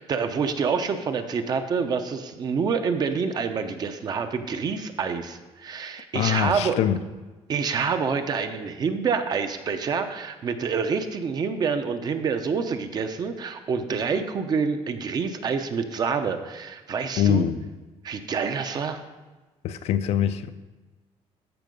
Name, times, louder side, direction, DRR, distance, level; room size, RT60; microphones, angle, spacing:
voice 1, 0.0-6.8 7.5-17.5 18.0-19.0, right 5 dB, 35° right, 0.7 m, -27 dB
voice 2, 6.1-7.0 17.2-17.7 19.6-20.5, left 9 dB, 65° left, 0.5 m, -23 dB
14.0 x 5.7 x 5.3 m
cardioid pair, 175°, 11 cm